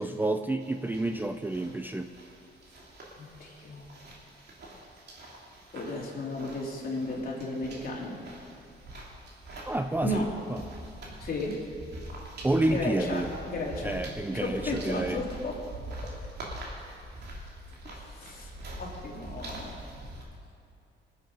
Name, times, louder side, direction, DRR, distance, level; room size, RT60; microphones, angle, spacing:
voice 1, 0.0-2.1 9.7-10.6 12.4-13.3 13.8-15.2, right 2 dB, 10° right, 7 dB, 0.5 m, -29 dB
sound 1, 0.6-20.2, right 1 dB, 55° right, 3.0 m, -44 dB
voice 2, 3.2-3.9 5.7-8.2 10.0-10.3 11.2-11.5 12.7-14.0 14.3-15.5 17.8-18.5 18.8-19.8, left 2 dB, 50° left, -3 dB, 3.6 m, -34 dB
20.0 x 8.1 x 5.2 m, 2.5 s
cardioid pair, 90°, 20 cm